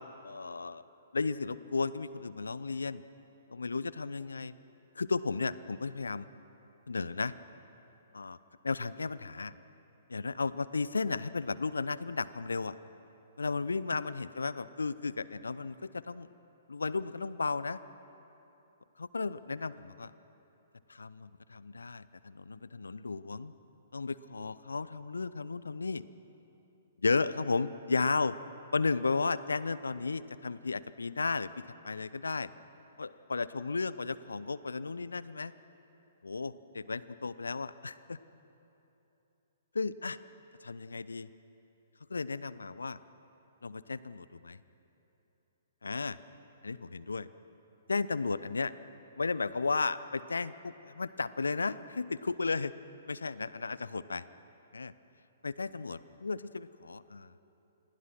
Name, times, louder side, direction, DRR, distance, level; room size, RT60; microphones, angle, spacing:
voice 1, 0.2-0.8 1.1-3.0 3.5-4.5 5.0-6.3 6.9-7.3 8.1-8.4 8.6-9.5 10.1-12.8 13.4-16.3 16.7-17.8 19.0-20.1 20.9-23.5 23.9-26.0 27.0-28.3 28.7-32.5 33.0-35.5 36.2-38.2 39.7-40.2 40.6-41.3 42.1-43.0 43.6-44.6 45.8-46.2 46.6-47.3 47.9-48.7 49.2-52.7 53.1-54.2 54.7-54.9 55.4-57.3, left 4 dB, 75° left, 17 dB, 0.7 m, -34 dB
27.5 x 20.5 x 6.1 m, 3.0 s
figure-of-eight pair, 120°, 0 cm